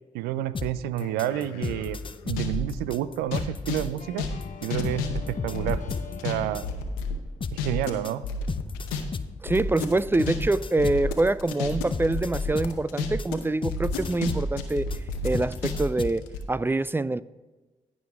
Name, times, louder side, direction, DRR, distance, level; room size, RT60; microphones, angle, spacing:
voice 1, 0.1-4.3 4.6-5.8 6.2-6.7 7.5-8.2, right 12 dB, 80° right, 16 dB, 0.4 m, -29 dB
sound 1, 0.5-7.0 7.4-16.3, left 4 dB, 35° left, 0.6 m, -35 dB
sound 2, 1.0-2.7 3.2-6.4 6.6-7.9 8.2-9.0 9.3-13.4 13.7-16.4, left 4 dB, 90° left, 0.8 m, -31 dB
sound 3, 4.0-7.2, left 6 dB, 50° left, 1.1 m, -43 dB
voice 2, 9.4-14.9 15.2-17.2, right 2 dB, 15° right, 18 dB, 0.4 m, -25 dB
15.0 x 5.1 x 3.5 m, 1.2 s
hypercardioid pair, 40°, 16 cm